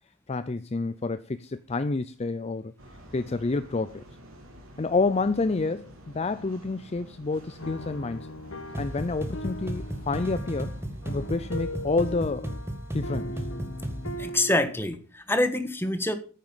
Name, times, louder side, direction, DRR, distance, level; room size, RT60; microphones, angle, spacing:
voice 1, 0.3-2.7 3.1-4.0 4.8-8.3 8.7-10.7 11.1-12.5 12.9-13.4, left 3 dB, 30° left, 0.5 m, -28 dB
sound 1, 2.8-11.4, equal, 75° right, 3.5 m, -49 dB
sound 2, 7.6-15.0, left 1 dB, 70° left, 1.3 m, -39 dB
sound 3, 8.7-14.3, equal, 10° right, 1.7 m, -35 dB
voice 2, 14.2-16.1, left 1 dB, 10° left, 1.4 m, -26 dB
9.6 x 9.2 x 5.6 m
head